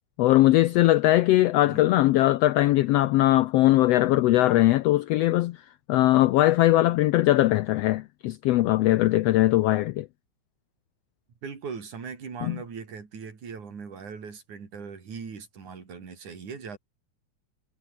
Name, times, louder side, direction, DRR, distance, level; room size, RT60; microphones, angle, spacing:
voice 1, 0.2-5.6 5.9-10.1 12.4-12.6, left 16 dB, 80° left, 1.4 m, -20 dB
voice 2, 1.7-2.0 11.4-16.8, right 5 dB, 80° right, 5.4 m, -39 dB
omnidirectional pair, 3.4 m